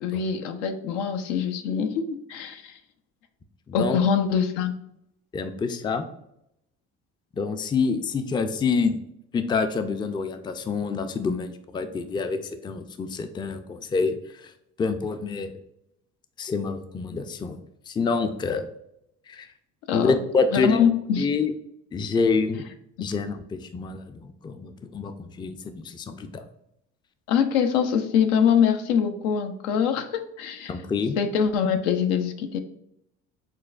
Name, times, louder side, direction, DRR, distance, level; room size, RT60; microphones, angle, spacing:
voice 1, 0.0-2.8 3.7-4.7 19.9-20.1 20.5-21.3 27.3-30.7 31.2-32.6, left 7 dB, 85° left, 7 dB, 0.5 m, -24 dB
voice 2, 3.7-4.0 5.3-6.1 7.3-9.0 9.3-14.5 14.8-15.5 16.4-17.6 17.9-18.7 19.3-19.5 19.9-20.8 21.2-21.5 21.9-22.6 23.0-26.4 30.7-31.2, left 4 dB, 15° left, 9 dB, 0.3 m, -27 dB
6.3 x 2.2 x 2.4 m, 0.78 s
supercardioid pair, 65°, 36 cm